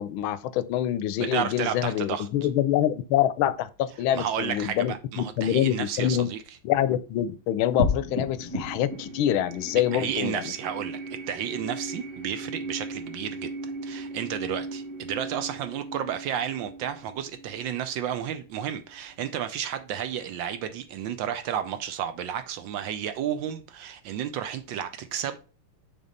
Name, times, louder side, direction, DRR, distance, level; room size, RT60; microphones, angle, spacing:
voice 1, 0.0-6.3 6.6-10.5, left 11 dB, 80° left, 1.4 m, -26 dB
voice 2, 1.2-2.3 4.1-6.4 9.9-25.4, right 9 dB, 75° right, 1.3 m, -32 dB
sound 1, 7.8-18.4, equal, 30° right, 1.8 m, -35 dB
6.2 x 3.5 x 5.2 m
omnidirectional pair, 2.2 m